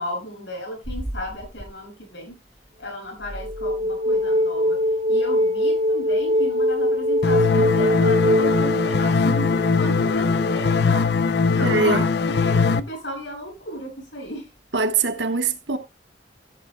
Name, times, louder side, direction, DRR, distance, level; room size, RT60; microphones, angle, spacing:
voice 1, 0.0-2.4 2.8-4.8 5.1-11.1 11.4-14.5, equal, 80° left, 7.4 m, -34 dB
sound 1, 0.9-1.6 3.3-11.0, left 1 dB, 35° right, 1.1 m, -23 dB
sound 2, 7.2-12.8, left 4 dB, 65° left, 0.6 m, -21 dB
voice 2, 11.6-12.0 14.7-15.8, right 4 dB, 75° right, 1.4 m, -22 dB
14.0 x 11.0 x 2.3 m
head